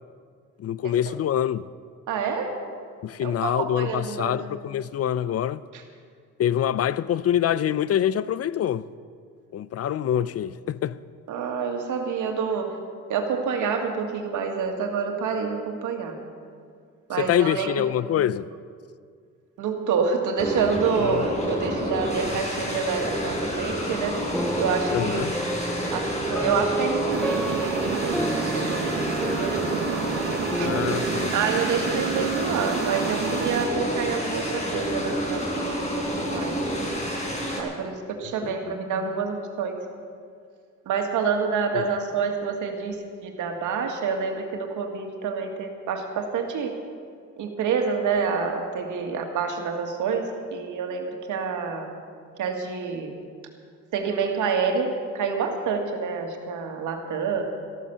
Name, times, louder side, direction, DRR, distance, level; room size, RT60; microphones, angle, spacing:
voice 1, 0.6-1.6 3.0-5.6 6.4-8.8 9.5-11.0 17.2-18.5 21.0-21.2 24.9-25.3 30.6-31.3 38.4-38.7 41.7-41.9, left 10 dB, 55° left, 0.5 m, -25 dB
voice 2, 2.1-2.5 3.2-4.4 5.7-5.8 11.3-12.8 13.1-16.2 17.1-17.8 19.6-24.2 24.6-25.2 25.9-28.9 29.2-29.8 30.5-30.7 31.3-36.6 37.6-39.7 40.9-46.7 47.4-51.9 52.4-53.1 53.9-57.4, right 5 dB, 80° right, 2.0 m, -27 dB
sound 1, 20.4-37.6, equal, 20° left, 4.4 m, -29 dB
sound 2, 24.3-33.5, right 1 dB, 5° left, 0.5 m, -32 dB
sound 3, 27.1-33.7, right 10 dB, 45° right, 0.5 m, -31 dB
14.0 x 13.0 x 6.9 m
cardioid pair, 90°, 30 cm